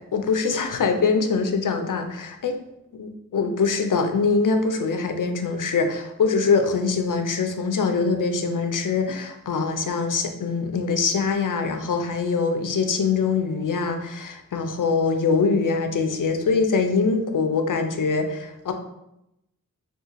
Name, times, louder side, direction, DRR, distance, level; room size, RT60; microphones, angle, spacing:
voice 1, 0.0-2.6 2.9-18.7, left 4 dB, 70° left, 6 dB, 0.5 m, -23 dB
3.0 x 2.4 x 3.6 m, 0.85 s
wide cardioid pair, 55°, 33 cm